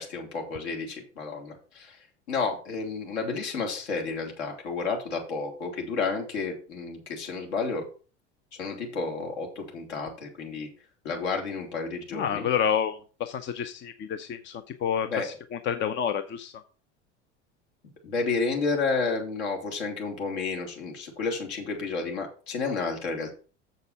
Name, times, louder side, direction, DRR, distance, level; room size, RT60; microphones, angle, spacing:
voice 1, 0.0-2.0 2.3-7.9 8.6-10.7 11.0-12.5 15.1-15.3 18.0-23.3, left 4 dB, 65° left, 1 dB, 3.6 m, -31 dB
voice 2, 12.1-16.5, left 8 dB, 30° left, 9 dB, 0.8 m, -29 dB
7.3 x 6.5 x 5.8 m, 0.37 s
figure-of-eight pair, 75°, 36 cm